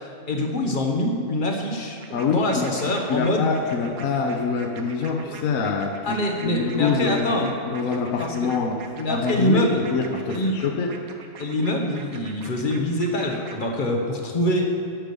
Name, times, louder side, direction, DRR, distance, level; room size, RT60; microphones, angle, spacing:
voice 1, 0.0-2.0 2.3-3.5 6.0-7.6 8.2-8.3 9.0-9.8 10.3-10.5 11.4-14.7, left 1 dB, 35° left, 1 dB, 1.3 m, -24 dB
sound 1, 2.0-13.7, right 5 dB, 90° right, 1.3 m, -43 dB
voice 2, 2.1-2.7 3.1-8.8 9.1-10.9, left 5 dB, 75° left, 3 dB, 1.3 m, -25 dB
12.5 x 5.0 x 6.8 m, 2.6 s
omnidirectional pair, 1.5 m